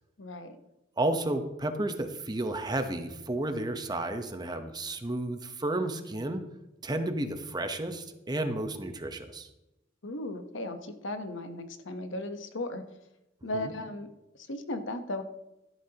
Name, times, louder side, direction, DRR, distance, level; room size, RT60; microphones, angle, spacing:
voice 1, 0.2-0.6 10.0-12.8 13.4-14.1 14.3-15.2, left 1 dB, 75° left, 7 dB, 1.1 m, -36 dB
voice 2, 1.0-6.4 6.8-9.5 13.5-13.7, right 1 dB, 20° right, 7 dB, 1.0 m, -32 dB
13.5 x 11.5 x 2.9 m, 0.93 s
head